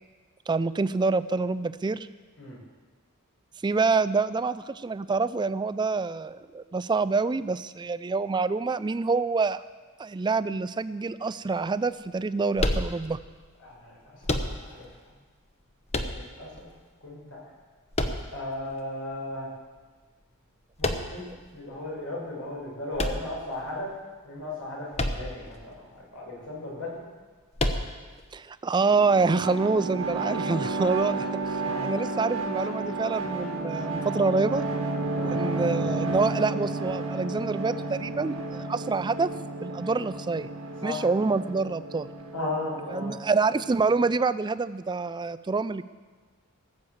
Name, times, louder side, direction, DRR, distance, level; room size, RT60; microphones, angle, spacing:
voice 1, 0.5-2.1 3.6-9.6 10.0-13.2 28.3-31.3 31.8-34.6 35.3-39.3 39.6-40.5 40.8-42.1 42.9-45.8, right 4 dB, 20° right, 15 dB, 0.3 m, -26 dB
sound 1, 12.6-13.4 14.2-14.9 15.9-16.6 17.9-18.7 20.8-21.4 22.9-23.8 24.9-25.5 25.8-25.9 27.6-28.2, left 1 dB, 30° left, 0.9 m, -29 dB
voice 2, 13.6-13.9 14.6-14.9 16.1-16.7 17.0-17.2 18.3-19.5 20.8-23.9 24.2-27.0 31.6-31.9 35.1-35.4 40.8-41.1 42.3-43.2, left 2 dB, 75° left, -3 dB, 5.7 m, -36 dB
sound 2, 28.7-44.1, right 2 dB, 75° right, 1.6 m, -32 dB
18.0 x 7.3 x 7.8 m, 1.4 s
head